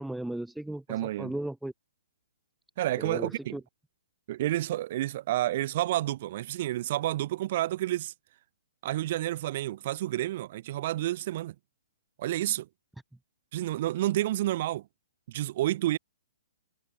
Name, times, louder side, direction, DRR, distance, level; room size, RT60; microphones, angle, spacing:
voice 1, 0.0-1.7 3.0-3.6, right 1 dB, ahead, 2.2 m, -36 dB
voice 2, 0.9-1.3 2.8-3.6 4.3-8.1 8.8-11.5 12.2-12.7 13.5-14.9 15.3-16.0, right 14 dB, 45° right, 3.9 m, -30 dB
hypercardioid pair, 130°, 0 cm